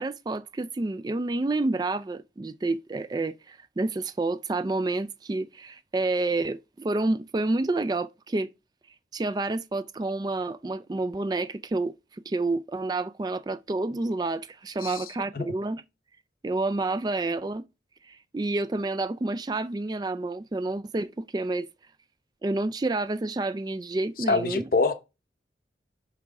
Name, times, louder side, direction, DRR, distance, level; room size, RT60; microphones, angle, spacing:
voice 1, 0.0-8.5 9.1-15.8 16.4-17.6 18.0-21.7 22.4-24.6, right 2 dB, 20° right, 0.3 m, -29 dB
voice 2, 24.3-24.9, left 3 dB, 50° left, 0.8 m, -24 dB
5.9 x 5.9 x 3.6 m
head